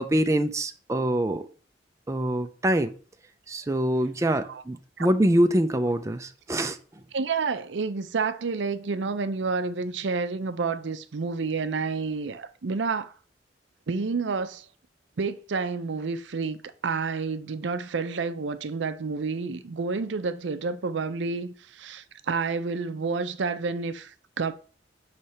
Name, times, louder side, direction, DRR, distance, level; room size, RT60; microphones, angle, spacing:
voice 1, 0.0-1.5 2.1-2.9 3.5-6.8, right 1 dB, 15° right, 0.4 m, -24 dB
voice 2, 7.1-13.2 13.9-14.7 15.2-16.6 16.8-24.5, right 4 dB, 80° right, 0.5 m, -29 dB
6.4 x 3.2 x 5.6 m
head